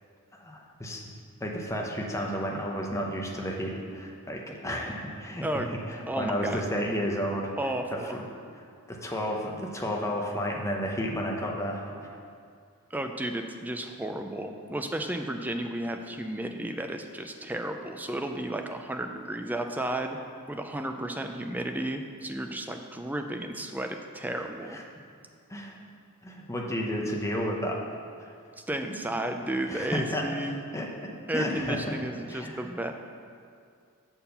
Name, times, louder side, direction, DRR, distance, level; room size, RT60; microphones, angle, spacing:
voice 1, 0.3-1.0 1.4-7.5 8.1-8.2 8.9-12.1 24.7-24.8 25.5-25.8 26.2-27.8 28.2-28.3 28.9-29.0 29.7-32.0 32.3-32.6, equal, 15° left, -1 dB, 0.8 m, -32 dB
voice 2, 6.1-6.6 7.6-8.1 12.9-20.2 20.5-24.8 28.7-30.6 31.3-32.9, right 1 dB, 10° right, 5 dB, 0.4 m, -33 dB
7.2 x 4.5 x 6.7 m, 2.3 s
head